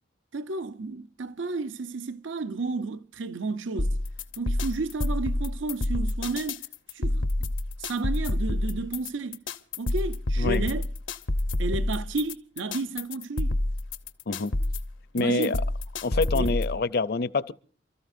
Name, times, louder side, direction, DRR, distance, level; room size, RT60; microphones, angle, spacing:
voice 1, 0.3-4.0 4.4-6.6 6.9-7.3 7.8-9.4 9.8-10.9 11.6-13.6 15.1-15.6 16.3-16.6, right 3 dB, 80° right, 0.7 m, -32 dB
sound 1, 3.8-16.8, left 1 dB, 90° left, 0.9 m, -28 dB
voice 2, 15.1-15.6 16.0-17.5, left 4 dB, 55° left, 0.6 m, -26 dB
29.0 x 13.5 x 2.6 m
head